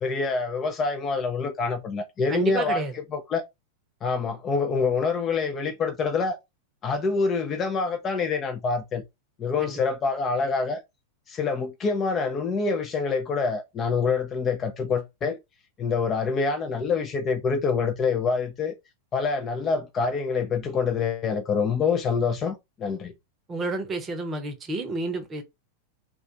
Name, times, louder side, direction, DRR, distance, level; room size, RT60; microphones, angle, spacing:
voice 1, 0.0-3.4 4.0-6.4 6.8-9.0 9.4-10.8 11.3-15.4 15.8-18.7 19.1-23.1, left 4 dB, 25° left, 0.4 m, -26 dB
voice 2, 2.3-2.9 9.6-9.8 23.5-25.4, right 3 dB, 20° right, 0.7 m, -30 dB
2.3 x 2.3 x 2.7 m
figure-of-eight pair, 90°, 0 cm